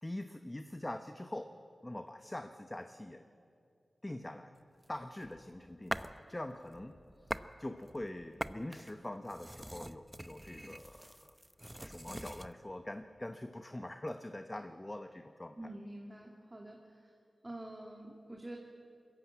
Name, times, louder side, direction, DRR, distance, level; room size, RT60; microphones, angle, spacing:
voice 1, 0.0-1.5 1.8-3.3 4.0-4.5 4.9-11.4 11.8-15.7, left 1 dB, 20° left, 8 dB, 0.9 m, -44 dB
sound 1, 4.8-6.2 6.6-7.5 7.8-12.5, equal, 5° right, 0.7 m, -44 dB
voice 2, 15.6-17.1 17.4-18.6, right 1 dB, 25° right, 0 dB, 2.3 m, -47 dB
22.0 x 14.0 x 8.9 m, 2.4 s
cardioid pair, 55°, 0 cm